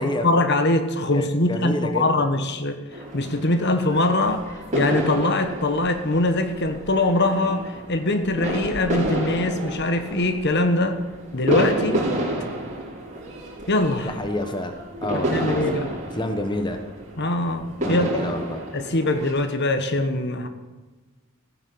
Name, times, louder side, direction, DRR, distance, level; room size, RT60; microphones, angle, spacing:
voice 1, 0.0-2.8 3.1-11.0 11.3-12.1 13.7-14.1 15.1-15.9 17.2-18.4 18.7-20.5, left 2 dB, 50° left, 8 dB, 1.3 m, -22 dB
voice 2, 1.1-2.0 14.0-14.7 15.0-15.9 16.2-16.8 17.8-18.6, left 1 dB, 20° left, 6 dB, 1.1 m, -28 dB
sound 1, 2.9-19.3, right 1 dB, 35° right, 5.2 m, -30 dB
16.0 x 10.0 x 7.9 m, 1.2 s
head